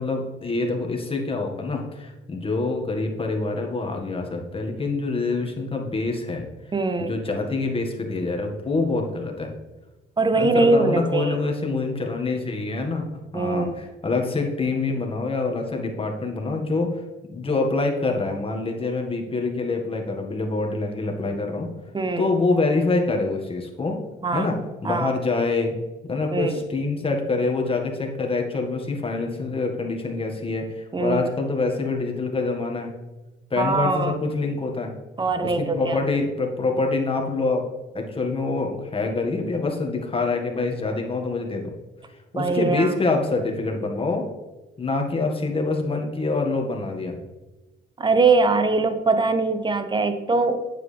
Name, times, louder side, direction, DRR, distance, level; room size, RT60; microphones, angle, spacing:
voice 1, 0.0-6.4 7.0-9.5 10.4-13.0 13.3-17.0 17.3-21.7 22.2-24.0 24.3-24.6 24.8-25.7 26.1-32.9 33.5-34.9 35.4-37.7 37.9-41.7 42.3-44.3 44.8-47.2, left 3 dB, 30° left, 2 dB, 1.8 m, -25 dB
voice 2, 6.7-7.1 10.2-11.3 13.3-13.8 21.9-22.3 24.2-24.5 24.8-25.2 26.3-26.5 30.9-31.3 33.6-34.1 35.2-36.0 42.3-42.9 48.0-50.6, right 3 dB, 25° right, 9 dB, 0.9 m, -22 dB
8.9 x 7.6 x 3.4 m, 1.1 s
cardioid pair, 90°, 20 cm